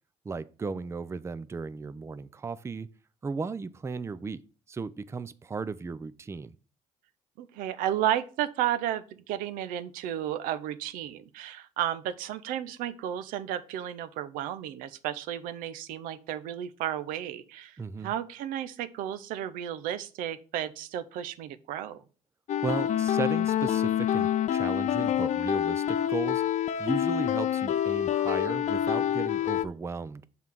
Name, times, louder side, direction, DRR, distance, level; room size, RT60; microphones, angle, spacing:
voice 1, 0.2-2.9 3.2-4.4 4.7-6.5 17.8-18.1 22.6-26.4 26.8-30.3, right 4 dB, 20° right, 0.4 m, -35 dB
voice 2, 7.4-22.0, right 11 dB, 85° right, 0.6 m, -33 dB
sound 1, 22.5-29.6, left 10 dB, 60° left, 0.5 m, -27 dB
5.5 x 3.9 x 6.0 m
supercardioid pair, 80°, 14 cm